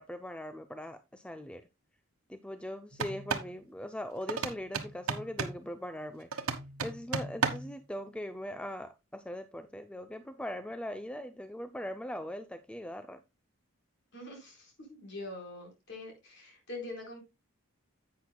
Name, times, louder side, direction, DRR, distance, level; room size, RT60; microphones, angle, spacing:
voice 1, 0.0-1.7 2.3-6.3 6.8-13.2, equal, 5° left, 0.4 m, -40 dB
sound 1, 2.9-3.5 4.3-5.6 6.3-7.8, right 5 dB, 85° right, 1.1 m, -34 dB
voice 2, 14.1-14.7 15.0-17.2, left 2 dB, 50° left, 4.3 m, -44 dB
11.0 x 8.4 x 2.2 m
head